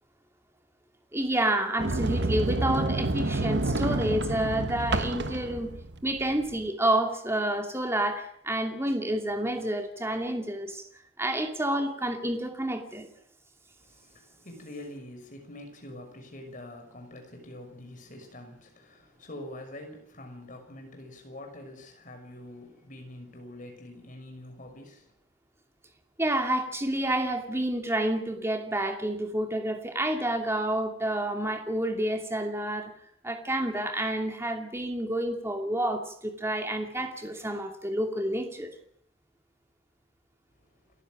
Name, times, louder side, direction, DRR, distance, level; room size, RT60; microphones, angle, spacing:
voice 1, 1.1-5.7 6.0-10.8 11.2-13.1 26.2-32.9 33.2-38.7, right 1 dB, 15° right, 2.5 m, -29 dB
Sliding door, 1.8-6.6, right 2 dB, 60° right, 1.3 m, -29 dB
voice 2, 13.8-25.1, left 1 dB, 40° left, 6.1 m, -45 dB
29.0 x 15.0 x 6.3 m
head